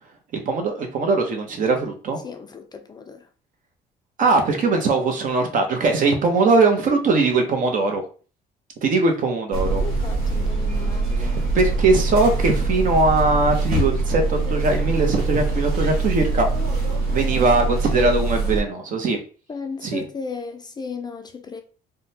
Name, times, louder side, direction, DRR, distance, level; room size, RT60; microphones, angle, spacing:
voice 1, 0.5-2.2 4.2-8.0 8.8-9.9 11.2-16.5 17.1-19.2 19.8-20.0, right 3 dB, 50° right, 0.8 m, -20 dB
voice 2, 2.2-3.3 9.0-9.1 9.8-11.4 19.5-21.6, left 5 dB, 25° left, 0.3 m, -35 dB
sound 1, 9.5-18.6, right 3 dB, 70° right, 1.6 m, -23 dB
3.7 x 2.2 x 2.8 m
cardioid pair, 110°, 17 cm